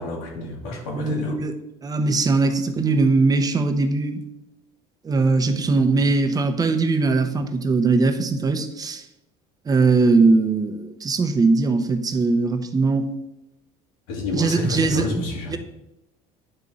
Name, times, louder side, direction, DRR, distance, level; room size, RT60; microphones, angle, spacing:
voice 1, 0.0-1.4 14.1-15.6, left 2 dB, 85° left, 0 dB, 1.9 m, -29 dB
voice 2, 0.9-1.5 1.8-4.2 5.0-9.0 9.7-13.1 14.4-15.6, right 3 dB, 25° right, 7 dB, 0.8 m, -20 dB
9.9 x 3.6 x 4.0 m, 0.90 s
supercardioid pair, 105°, 17 cm